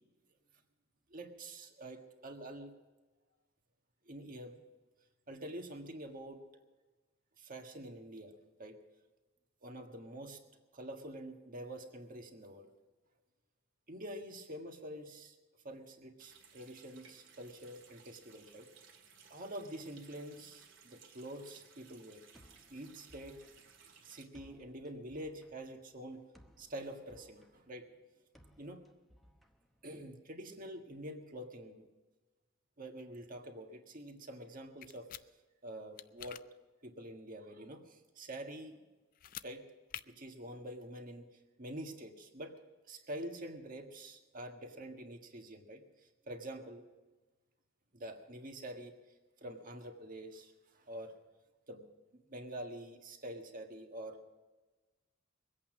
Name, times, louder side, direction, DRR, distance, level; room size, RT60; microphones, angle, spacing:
voice 1, 1.1-2.7 4.0-4.6 5.3-6.4 7.4-8.8 9.6-10.4 10.7-12.7 13.9-15.3 15.6-18.9 19.3-22.2 22.7-23.4 24.0-26.2 26.6-27.8 28.6-28.8 29.8-31.9 32.8-35.1 35.6-36.4 36.8-38.8 39.4-39.6 40.1-41.3 41.6-42.5 42.9-45.8 46.3-46.8 47.9-48.9 49.4-51.2 51.7-51.8 52.3-54.2, right 1 dB, 45° right, 4 dB, 1.6 m, -46 dB
Water tap faucet, 16.2-24.2, right 6 dB, 80° right, 2.1 m, -61 dB
sound 1, 22.3-30.3, equal, ahead, 0.9 m, -64 dB
sound 2, 34.8-35.2 36.0-36.4 39.1-39.5 39.9-40.0, left 11 dB, 45° left, 0.4 m, -46 dB
22.0 x 8.5 x 6.1 m, 1.2 s
head